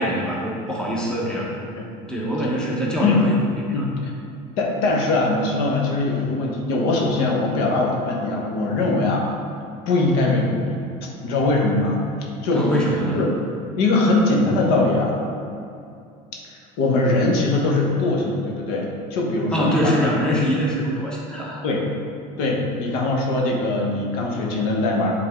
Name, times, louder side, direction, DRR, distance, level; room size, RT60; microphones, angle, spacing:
voice 1, 0.0-1.5 2.1-3.9 12.5-13.2 19.5-21.6, equal, 5° left, -4 dB, 1.1 m, -24 dB
voice 2, 3.7-4.1 4.6-9.3 9.9-12.0 12.4-12.7 13.1-13.3 13.8-15.1 16.8-20.3 21.6-21.9 22.4-25.1, left 2 dB, 75° left, -1 dB, 1.2 m, -21 dB
7.7 x 3.8 x 3.7 m, 2.5 s
cardioid pair, 130°, 16 cm